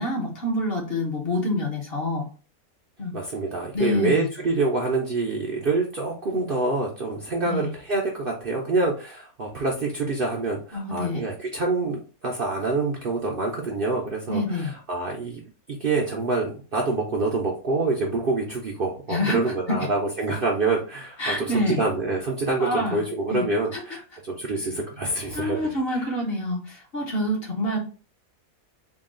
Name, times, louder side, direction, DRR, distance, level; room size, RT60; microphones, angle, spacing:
voice 1, 0.0-2.3 3.0-3.1 3.7-4.2 7.4-7.7 10.7-11.2 14.3-14.7 19.1-19.9 21.2-21.8 22.6-23.0 23.3-23.5 23.7-23.8 25.3-27.8, left 1 dB, 45° left, -1 dB, 1.2 m, -27 dB
voice 2, 3.1-15.4 15.8-26.0, right 3 dB, 50° right, -1 dB, 0.7 m, -26 dB
3.7 x 2.3 x 3.7 m, 0.36 s
omnidirectional pair, 1.5 m